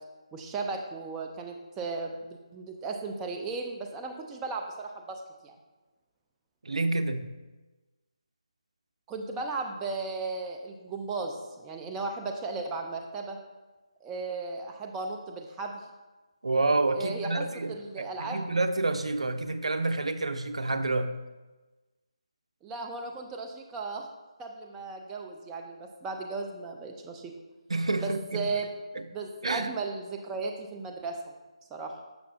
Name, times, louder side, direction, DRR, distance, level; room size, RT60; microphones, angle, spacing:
voice 1, 0.3-5.6 9.1-13.4 14.0-15.8 16.9-18.4 22.6-24.1 24.4-27.3 28.0-28.7 29.1-31.2 31.7-31.9, right 3 dB, 10° right, 2 dB, 0.4 m, -36 dB
voice 2, 6.6-7.2 16.4-21.1 27.7-28.5 29.4-29.7, right 2 dB, 75° right, 8 dB, 0.6 m, -28 dB
7.0 x 6.5 x 2.6 m, 1.2 s
figure-of-eight pair, 160°, 3 cm